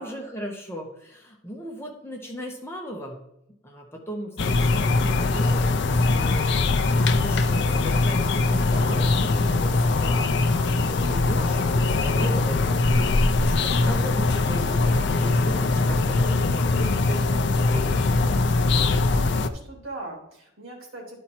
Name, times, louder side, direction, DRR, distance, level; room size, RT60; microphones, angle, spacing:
voice 1, 0.0-3.2 3.6-18.2, equal, 10° left, 0 dB, 1.2 m, -37 dB
sound 1, 4.4-19.5, left 3 dB, 60° left, 0.5 m, -22 dB
sound 2, 8.4-17.9, left 1 dB, 65° right, 2.0 m, -42 dB
voice 2, 18.8-21.2, right 2 dB, 85° right, 1 dB, 2.5 m, -40 dB
11.5 x 4.5 x 4.4 m, 0.83 s
head